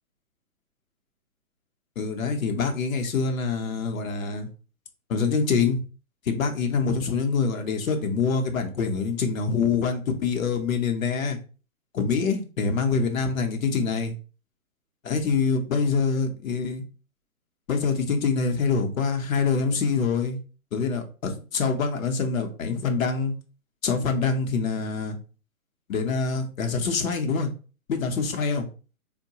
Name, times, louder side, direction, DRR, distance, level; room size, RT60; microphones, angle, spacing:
voice 1, 2.0-4.5 5.1-5.8 6.3-11.4 11.9-14.1 15.0-16.8 17.7-20.4 20.7-23.3 23.8-25.2 25.9-27.5 27.9-28.7, left 5 dB, 70° left, 4 dB, 0.8 m, -25 dB
3.7 x 2.2 x 2.7 m, 0.35 s
hypercardioid pair, 145°, 43 cm